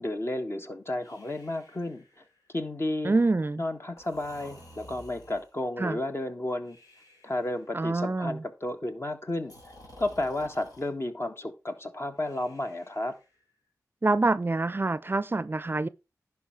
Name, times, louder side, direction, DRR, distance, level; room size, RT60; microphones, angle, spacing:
voice 1, 0.0-2.0 2.5-3.2 3.6-6.8 7.2-9.5 10.0-13.2, left 1 dB, 40° left, 1.6 m, -32 dB
Breathing, 1.0-2.6 4.0-5.6 6.6-7.6 9.4-10.9 12.2-13.4, left 1 dB, 75° left, 3.3 m, -53 dB
voice 2, 3.0-3.6 5.8-6.0 7.7-8.4 14.0-15.9, right 3 dB, 35° right, 0.5 m, -26 dB
11.0 x 5.0 x 4.6 m
cardioid pair, 40°, 6 cm